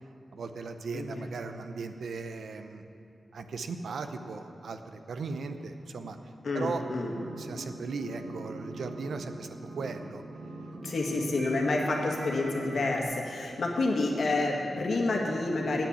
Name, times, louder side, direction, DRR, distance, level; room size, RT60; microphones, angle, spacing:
voice 1, 0.3-2.8 3.3-6.2 6.5-6.8 7.4-10.2, right 4 dB, 85° right, 8 dB, 0.6 m, -37 dB
voice 2, 0.9-1.3 6.4-7.1 10.8-15.9, left 2 dB, 75° left, 0 dB, 1.7 m, -29 dB
sound 1, 7.0-7.7 8.0-13.0, right 1 dB, 65° right, 1.9 m, -40 dB
8.9 x 8.5 x 8.0 m, 2.6 s
cardioid pair, 60°, 0 cm